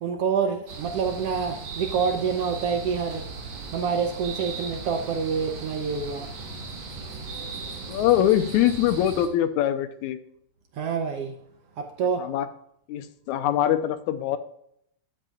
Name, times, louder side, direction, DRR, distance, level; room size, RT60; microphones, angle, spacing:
voice 1, 0.0-3.3 3.7-6.3 10.7-11.4 11.8-12.2, right 6 dB, 70° right, 5 dB, 1.6 m, -27 dB
sound 1, 0.7-9.3, right 4 dB, 50° right, 1.9 m, -37 dB
voice 2, 7.9-10.2 12.2-12.5 12.9-14.4, left 11 dB, 80° left, 11 dB, 2.2 m, -23 dB
12.5 x 7.9 x 2.4 m, 0.70 s
omnidirectional pair, 3.4 m